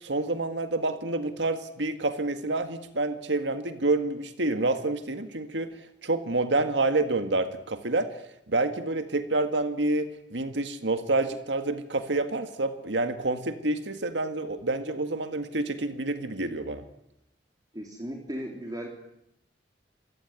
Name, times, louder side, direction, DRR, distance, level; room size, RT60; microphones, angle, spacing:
voice 1, 0.0-5.7 6.0-8.2 8.5-16.8, right 2 dB, 80° right, 8 dB, 1.9 m, -28 dB
voice 2, 17.7-18.9, equal, 20° right, 1 dB, 3.6 m, -36 dB
27.5 x 22.5 x 9.6 m, 0.84 s
head